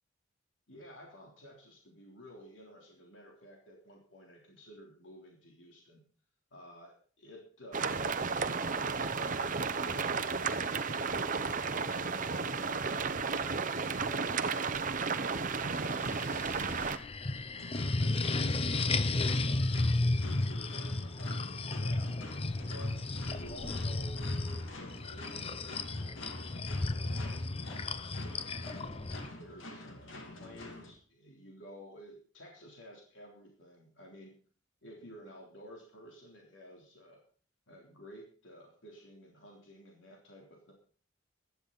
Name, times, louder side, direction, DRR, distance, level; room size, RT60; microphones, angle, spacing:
voice 1, 0.7-6.0 6.5-7.9 17.1-17.5 17.8-22.1 22.7-28.8 29.3-34.4 34.8-37.2 37.7-40.7, equal, 75° left, -1 dB, 3.4 m, -53 dB
sound 1, 7.7-17.0, right 5 dB, 45° right, 0.8 m, -33 dB
sound 2, 15.6-29.3, left 2 dB, 30° left, 0.6 m, -33 dB
sound 3, 17.5-30.9, left 1 dB, 90° left, 2.8 m, -47 dB
16.0 x 12.0 x 4.1 m, 0.43 s
head